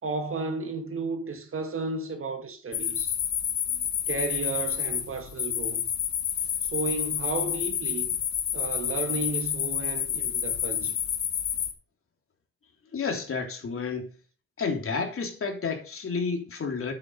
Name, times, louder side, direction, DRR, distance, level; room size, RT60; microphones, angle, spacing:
voice 1, 0.0-3.1 4.1-5.9 6.6-8.2 8.5-10.9, right 3 dB, 45° right, 2.3 m, -33 dB
sound 1, 2.7-11.7, left 9 dB, 65° left, 1.8 m, -29 dB
voice 2, 12.9-14.1 14.6-16.9, left 5 dB, 45° left, 3.4 m, -30 dB
8.5 x 8.0 x 5.6 m
cardioid pair, 90°, 30 cm